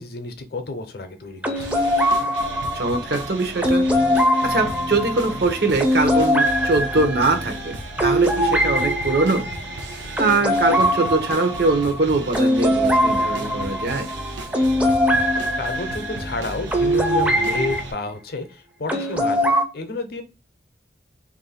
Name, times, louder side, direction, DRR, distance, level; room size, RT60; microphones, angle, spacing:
voice 1, 0.0-1.8 15.6-20.2, left 3 dB, 55° left, 7 dB, 0.6 m, -31 dB
sound 1, 1.4-17.8 18.9-19.6, equal, 10° right, 0.5 m, -22 dB
sound 2, 1.6-17.9, right 2 dB, 90° right, 0.8 m, -35 dB
voice 2, 2.7-3.8 4.4-9.4 10.0-14.1, right 3 dB, 60° right, 7 dB, 0.7 m, -22 dB
3.1 x 2.5 x 4.1 m, 0.29 s
head